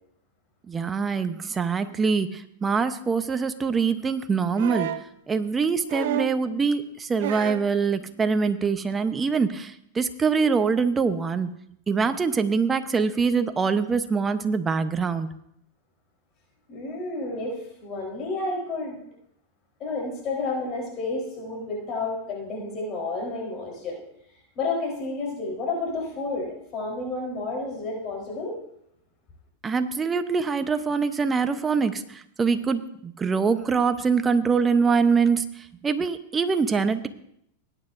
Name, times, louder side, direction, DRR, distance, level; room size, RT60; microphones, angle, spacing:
voice 1, 0.7-4.9 5.3-11.5 11.9-15.3 29.6-37.1, right 5 dB, 20° right, 9 dB, 0.9 m, -24 dB
sound 1, 4.5-5.1 5.9-6.4 7.2-7.7 8.9-9.0, right 12 dB, 70° right, 0.6 m, -30 dB
voice 2, 16.7-19.0 19.8-24.0 24.6-28.6, left 3 dB, 40° left, -1 dB, 3.9 m, -31 dB
19.5 x 9.6 x 2.6 m, 0.73 s
hypercardioid pair, 115°, 0 cm